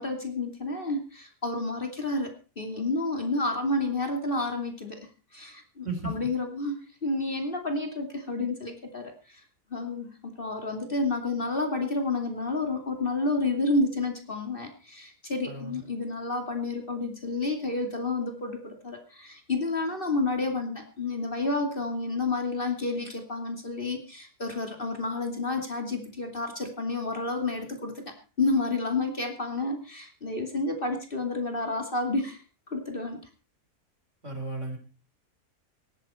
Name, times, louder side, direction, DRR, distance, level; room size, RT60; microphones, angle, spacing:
voice 1, 0.0-5.0 5.3-6.7 7.0-9.4 9.7-28.0 28.4-32.4 32.7-33.2, left 2 dB, 35° left, 4 dB, 2.8 m, -30 dB
voice 2, 5.8-6.3 15.4-15.8 34.2-34.8, right 2 dB, 50° right, 5 dB, 4.3 m, -35 dB
18.0 x 14.0 x 4.4 m, 0.34 s
omnidirectional pair, 1.6 m